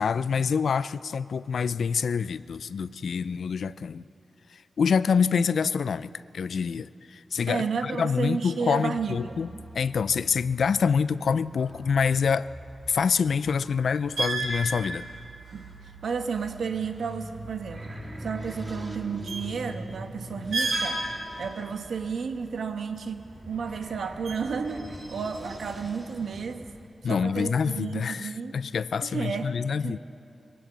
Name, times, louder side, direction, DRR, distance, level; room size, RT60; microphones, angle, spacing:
voice 1, 0.0-4.0 4.8-9.5 9.7-12.5 12.9-15.1 27.0-30.0, left 6 dB, 70° left, 16 dB, 0.4 m, -26 dB
voice 2, 7.5-9.4 15.5-17.9 18.2-21.0 21.4-26.7 27.0-28.6 29.0-29.5 29.8-30.0, right 5 dB, 80° right, 6 dB, 1.3 m, -32 dB
sound 1, 9.0-25.2, right 2 dB, 65° right, 4.3 m, -38 dB
sound 2, 16.4-26.9, right 1 dB, 30° right, 2.0 m, -42 dB
22.5 x 17.5 x 8.1 m, 2.7 s
wide cardioid pair, 165°, 0 cm